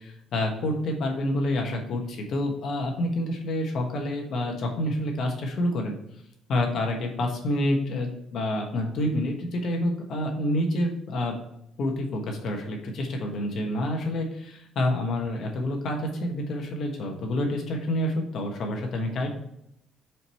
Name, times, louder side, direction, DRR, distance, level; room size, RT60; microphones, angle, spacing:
voice 1, 0.0-6.0 6.5-11.3 11.8-19.3, left 1 dB, 50° left, 1 dB, 1.3 m, -28 dB
5.1 x 4.6 x 4.3 m, 0.76 s
cardioid pair, 155°, 0 cm